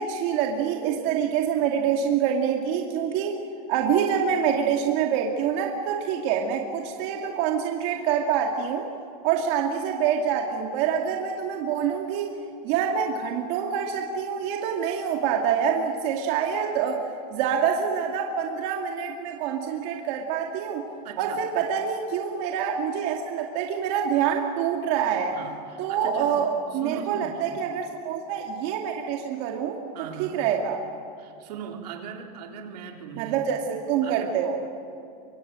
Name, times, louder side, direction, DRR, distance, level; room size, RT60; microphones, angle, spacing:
voice 1, 0.0-3.4 3.7-8.9 9.2-12.3 12.6-17.0 17.3-20.9 21.2-25.4 25.8-30.8 33.2-34.6, right 8 dB, 50° right, 1 dB, 2.3 m, -26 dB
voice 2, 21.0-21.4 25.3-26.4 26.7-27.6 29.9-30.4 31.2-33.4 34.0-34.4, right 6 dB, 85° right, 3 dB, 3.8 m, -39 dB
24.5 x 23.5 x 8.9 m, 2.5 s
supercardioid pair, 165°, 20 cm